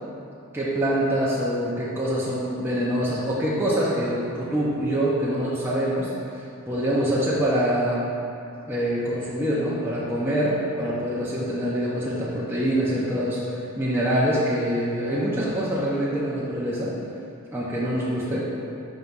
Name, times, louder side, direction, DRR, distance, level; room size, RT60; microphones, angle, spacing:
voice 1, 0.5-6.1 6.7-8.0 8.7-16.9 17.5-18.5, equal, 10° right, -9 dB, 0.7 m, -25 dB
6.0 x 3.2 x 5.3 m, 2.7 s
head